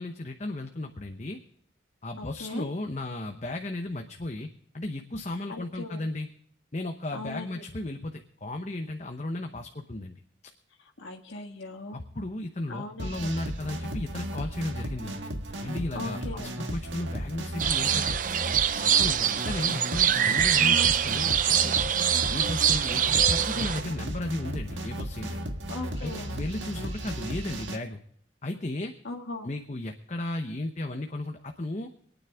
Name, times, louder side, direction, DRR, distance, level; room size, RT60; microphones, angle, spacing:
voice 1, 0.0-1.4 2.0-4.5 4.7-6.3 6.7-10.1 11.9-15.2 15.6-18.2 18.8-21.9 22.3-25.4 26.0-28.0 28.4-28.9 29.4-31.9, left 2 dB, 35° left, 5 dB, 0.8 m, -35 dB
voice 2, 2.2-2.7 5.5-6.1 7.1-7.6 10.8-12.0 12.7-13.3 15.9-16.5 20.6-20.9 25.7-26.3 29.0-29.5, left 2 dB, 85° left, 0 dB, 1.7 m, -38 dB
sound 1, 13.0-27.8, right 1 dB, 80° right, 1.6 m, -35 dB
sound 2, 17.6-23.8, right 9 dB, 45° right, 0.6 m, -24 dB
24.5 x 9.5 x 3.5 m, 0.66 s
head